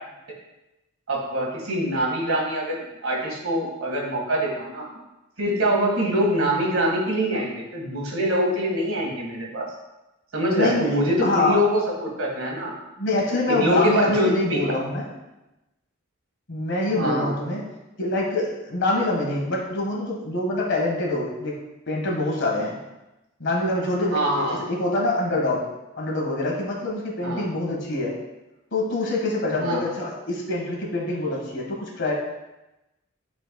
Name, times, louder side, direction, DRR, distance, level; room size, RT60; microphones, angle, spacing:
voice 1, 1.1-4.9 5.4-9.7 10.3-12.7 13.5-14.6 17.0-17.3 24.1-24.6 27.2-27.5 29.6-29.8, equal, 75° right, -2 dB, 1.7 m, -24 dB
voice 2, 10.4-11.6 13.0-15.1 16.5-17.6 18.0-21.6 21.9-22.8 23.4-25.6 26.0-28.2 28.7-32.1, left 2 dB, 60° left, -2 dB, 1.5 m, -25 dB
10.5 x 4.4 x 2.3 m, 0.99 s
head